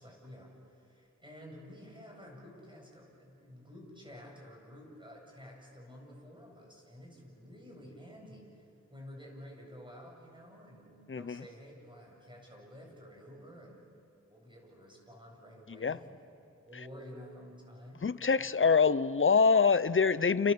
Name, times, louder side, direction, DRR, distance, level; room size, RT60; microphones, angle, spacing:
voice 1, 0.0-13.9 14.3-16.2 16.7-18.7, equal, 15° right, -1 dB, 8.0 m, -51 dB
voice 2, 18.0-20.5, left 5 dB, 45° left, 16 dB, 0.8 m, -25 dB
29.5 x 29.0 x 7.0 m, 2.6 s
wide cardioid pair, 65°, 30 cm